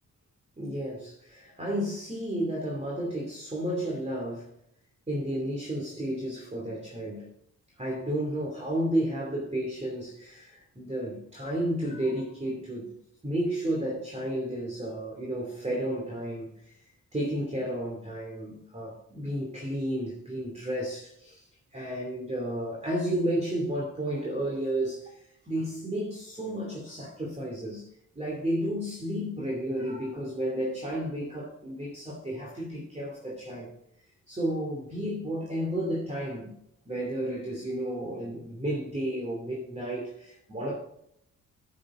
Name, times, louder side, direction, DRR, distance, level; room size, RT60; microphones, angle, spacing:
voice 1, 0.6-4.5 5.1-7.3 7.8-12.9 13.2-16.8 17.1-27.9 28.2-33.7 34.3-36.6 36.9-40.8, right 1 dB, 20° right, 2.6 m, -32 dB
10.0 x 7.6 x 3.8 m
wide cardioid pair, 100°, 34 cm